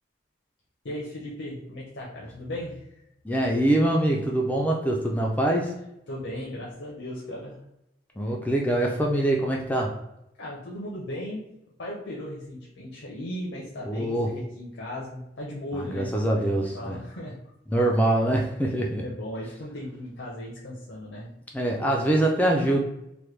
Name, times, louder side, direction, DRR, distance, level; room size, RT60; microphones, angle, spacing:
voice 1, 0.8-3.0 6.1-7.6 10.4-11.4 11.8-17.4 19.0-21.3, left 1 dB, 80° left, -5 dB, 0.7 m, -37 dB
voice 2, 3.2-5.7 8.2-9.9 13.9-14.3 15.7-17.0 17.7-19.0 21.5-22.8, right 1 dB, 10° left, 0 dB, 0.3 m, -24 dB
3.1 x 2.2 x 3.2 m, 0.85 s
head